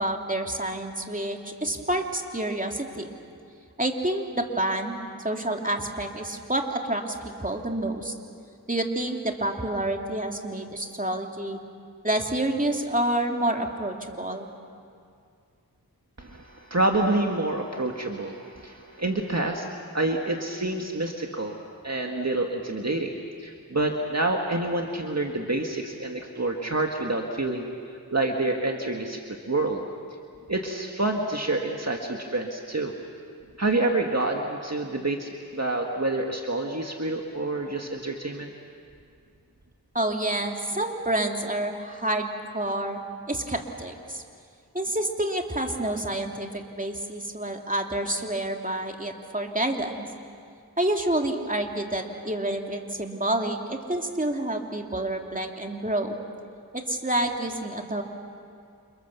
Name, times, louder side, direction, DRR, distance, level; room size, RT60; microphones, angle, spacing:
voice 1, 0.0-3.0 3.8-8.1 8.7-11.6 12.0-14.5 39.9-43.0 43.3-44.2 44.7-50.1 50.8-56.2 56.7-58.0, right 1 dB, 20° right, 2 dB, 2.8 m, -28 dB
voice 2, 16.2-19.7 19.9-21.6 21.8-23.1 23.4-27.7 28.1-29.8 30.5-32.9 33.6-38.5, right 2 dB, 45° right, 2 dB, 2.0 m, -27 dB
29.0 x 28.5 x 7.0 m, 2.3 s
wide cardioid pair, 40°, 37 cm